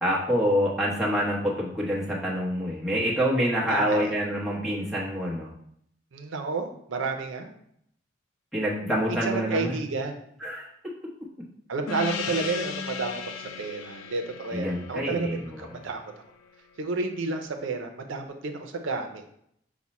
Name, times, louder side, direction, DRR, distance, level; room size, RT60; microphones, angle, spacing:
voice 1, 0.0-5.5 8.5-9.8 10.4-10.7 14.5-15.7, equal, ahead, -6 dB, 0.8 m, -26 dB
voice 2, 3.7-4.1 6.1-7.5 9.2-10.2 11.7-16.0 16.8-19.2, right 3 dB, 80° right, 5 dB, 0.5 m, -31 dB
Gong, 11.9-16.9, left 6 dB, 85° left, 0.4 m, -37 dB
5.9 x 2.1 x 4.1 m, 0.70 s
head